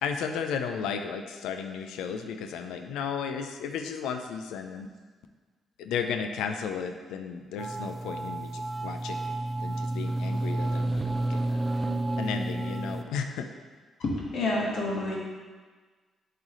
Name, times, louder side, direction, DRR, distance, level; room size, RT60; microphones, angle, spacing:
voice 1, 0.0-4.9 5.8-11.0 11.3-11.6 12.2-13.5, left 6 dB, 90° left, 6 dB, 0.4 m, -34 dB
sound 1, 7.6-13.0, right 2 dB, 20° right, 0.4 m, -30 dB
voice 2, 14.0-15.2, left 2 dB, 70° left, -3 dB, 1.4 m, -28 dB
7.9 x 3.2 x 3.7 m, 1.4 s
cardioid pair, 90°, 0 cm